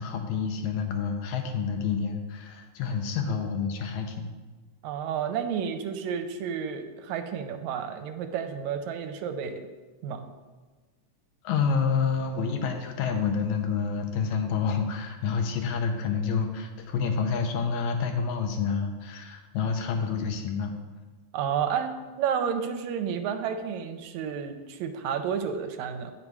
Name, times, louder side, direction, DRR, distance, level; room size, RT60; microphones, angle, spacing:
voice 1, 0.0-4.3 11.4-20.7, left 5 dB, 80° left, 4 dB, 2.1 m, -28 dB
voice 2, 4.8-9.6 10.0-10.3 21.3-21.9 22.2-26.1, right 7 dB, 90° right, 7 dB, 2.0 m, -31 dB
9.0 x 5.5 x 4.8 m, 1.3 s
omnidirectional pair, 3.3 m